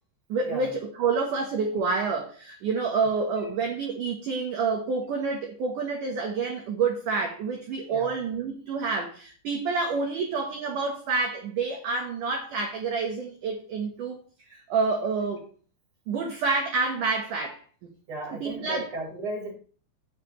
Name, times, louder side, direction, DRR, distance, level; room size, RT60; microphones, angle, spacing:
voice 1, 0.3-14.2 14.5-15.4 16.1-17.6 18.4-18.9, right 4 dB, 65° right, 1 dB, 2.2 m, -28 dB
voice 2, 18.1-19.5, right 1 dB, 30° right, -4 dB, 5.3 m, -35 dB
18.0 x 6.7 x 3.2 m, 0.41 s
omnidirectional pair, 5.3 m